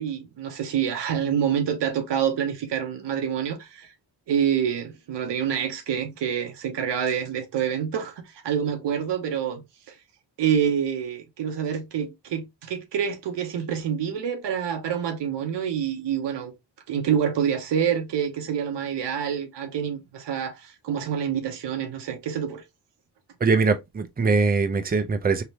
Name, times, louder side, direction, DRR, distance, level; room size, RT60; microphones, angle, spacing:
voice 1, 0.0-3.9 4.3-9.9 10.4-16.5 16.9-22.6, right 8 dB, 85° right, 0.9 m, -27 dB
voice 2, 23.4-25.4, right 4 dB, 20° right, 0.6 m, -22 dB
3.3 x 2.9 x 2.8 m
cardioid pair, 55°, 41 cm